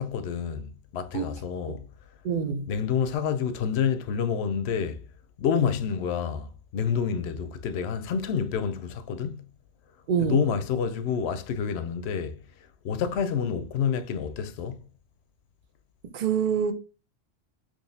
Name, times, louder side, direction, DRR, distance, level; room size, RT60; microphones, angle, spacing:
voice 1, 0.0-1.8 2.7-5.0 5.4-6.5 6.7-9.4 10.2-12.4 12.8-14.8, left 7 dB, 65° left, 0.8 m, -28 dB
voice 2, 2.2-2.7 10.1-10.4 16.1-16.7, right 7 dB, 55° right, 0.6 m, -26 dB
3.9 x 3.0 x 2.6 m
omnidirectional pair, 1.3 m